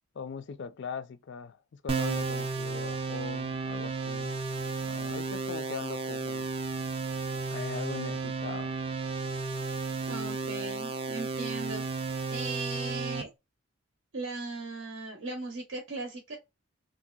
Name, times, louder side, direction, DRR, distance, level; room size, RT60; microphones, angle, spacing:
voice 1, 0.1-4.3 4.9-6.5 7.5-8.7, left 6 dB, 55° left, 0.3 m, -40 dB
sound 1, 1.9-13.2, right 4 dB, 25° right, 0.3 m, -33 dB
voice 2, 10.1-11.8 12.3-13.3 14.1-16.4, right 3 dB, 75° right, 0.7 m, -37 dB
3.2 x 2.6 x 2.3 m
head